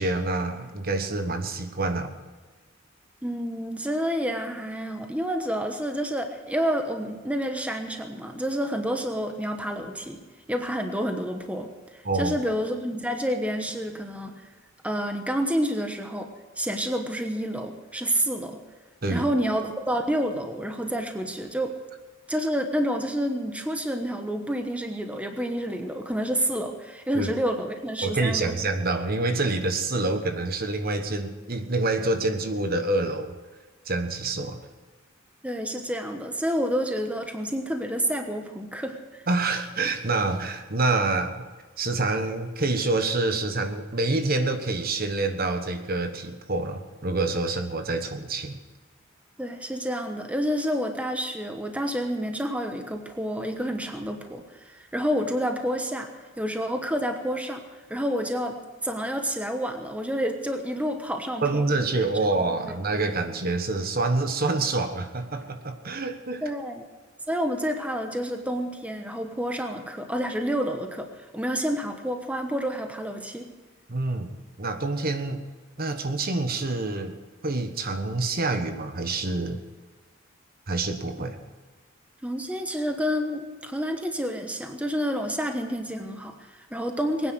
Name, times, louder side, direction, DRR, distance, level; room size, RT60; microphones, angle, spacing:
voice 1, 0.0-2.1 12.0-12.4 19.0-19.3 27.1-27.3 28.0-33.3 33.8-34.6 39.3-41.5 41.8-48.6 61.4-66.4 73.9-75.4 75.8-77.2 77.4-79.6 80.7-81.4, right 2 dB, 45° right, 7 dB, 1.3 m, -27 dB
voice 2, 3.2-10.2 10.5-14.4 14.8-16.3 16.6-18.6 19.1-21.8 22.3-28.5 35.4-39.3 49.4-56.1 56.4-57.6 57.9-61.6 62.4-62.7 66.4-66.8 67.3-73.5 82.2-87.3, equal, 5° right, 5 dB, 1.1 m, -29 dB
21.5 x 9.8 x 6.2 m, 1.3 s
head